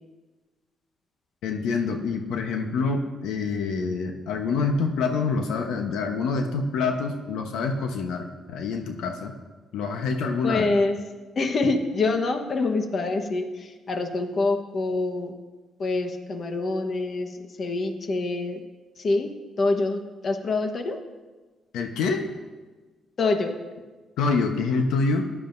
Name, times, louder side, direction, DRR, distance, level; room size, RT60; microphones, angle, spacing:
voice 1, 1.4-9.3 9.7-10.7 21.7-22.3 24.2-25.3, left 4 dB, 85° left, 4 dB, 1.0 m, -26 dB
voice 2, 10.4-11.0 11.4-15.3 15.8-18.6 19.0-19.3 19.6-21.0 23.2-23.6, left 3 dB, 50° left, 6 dB, 1.2 m, -26 dB
17.0 x 11.0 x 2.7 m, 1.3 s
cardioid pair, 90°, 0 cm